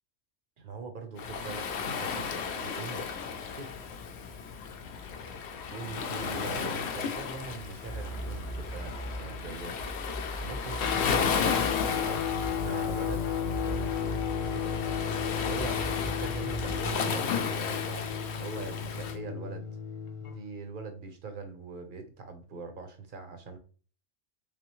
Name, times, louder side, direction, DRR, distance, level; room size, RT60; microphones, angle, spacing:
voice 1, 0.6-3.1 3.4-4.0 5.7-9.9 10.4-11.6 11.9-13.2 13.5-15.2 15.4-18.1 18.4-19.7 20.2-23.6, right 4 dB, 50° right, 6 dB, 0.8 m, -42 dB
Waves surf, 1.2-19.2, left 6 dB, 65° left, 0.8 m, -34 dB
sound 1, 7.8-16.9, equal, 15° left, 0.7 m, -39 dB
Guitar, 10.8-20.4, left 8 dB, 90° left, 1.1 m, -33 dB
3.4 x 3.4 x 3.0 m, 0.40 s
omnidirectional pair, 1.3 m